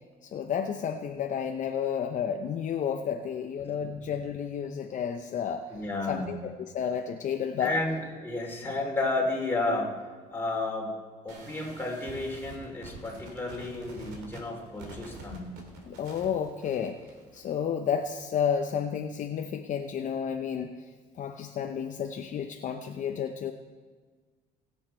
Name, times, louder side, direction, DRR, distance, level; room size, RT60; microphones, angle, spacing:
voice 1, 0.2-5.8 6.1-7.8 15.9-17.0 17.3-20.9 21.2-23.5, left 7 dB, 50° left, 6 dB, 0.6 m, -31 dB
voice 2, 5.7-6.3 7.6-10.1 10.3-11.0 11.2-15.5, left 2 dB, 15° left, -1 dB, 2.9 m, -32 dB
sound 1, 11.3-17.4, right 2 dB, 85° right, 2.4 m, -47 dB
19.5 x 7.3 x 4.4 m, 1.5 s
cardioid pair, 110°, 17 cm